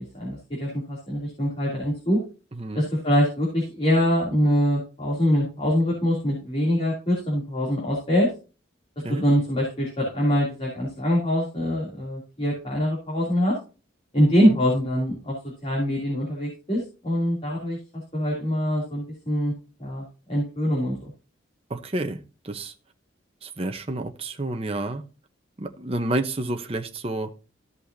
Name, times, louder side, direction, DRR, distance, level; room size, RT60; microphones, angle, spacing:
voice 1, 0.0-2.2 2.7-8.3 9.1-13.5 14.1-15.4 15.6-17.8 18.1-19.5 19.8-21.1, equal, 30° left, 2.9 m, -24 dB
voice 2, 2.5-2.9 9.0-9.2 14.5-14.6 21.7-22.7 23.4-25.0 25.6-27.3, right 2 dB, 30° right, 0.9 m, -30 dB
14.5 x 5.5 x 2.7 m
head